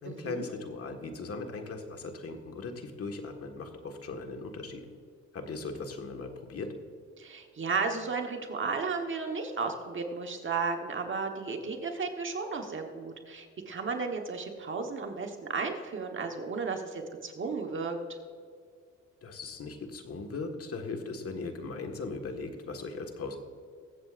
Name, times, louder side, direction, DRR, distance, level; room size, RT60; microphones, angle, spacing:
voice 1, 0.0-4.8 5.3-6.7 19.2-23.4, left 3 dB, 50° left, 4 dB, 1.7 m, -38 dB
voice 2, 7.2-18.2, right 4 dB, 40° right, 3 dB, 1.2 m, -34 dB
22.5 x 7.8 x 2.5 m, 2.1 s
cardioid pair, 90°, 30 cm